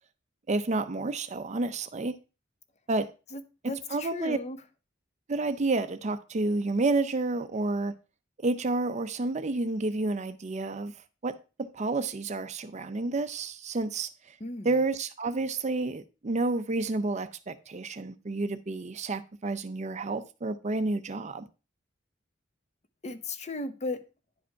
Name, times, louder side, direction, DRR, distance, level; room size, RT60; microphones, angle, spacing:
voice 1, 0.5-2.2 2.9-3.1 3.6-4.4 5.3-7.9 8.4-10.9 11.2-14.1 14.6-21.5, right 3 dB, 35° right, 0.5 m, -30 dB
voice 2, 3.3-4.6 14.4-14.7 23.0-24.0, left 2 dB, 35° left, 0.8 m, -36 dB
10.5 x 5.1 x 4.5 m
head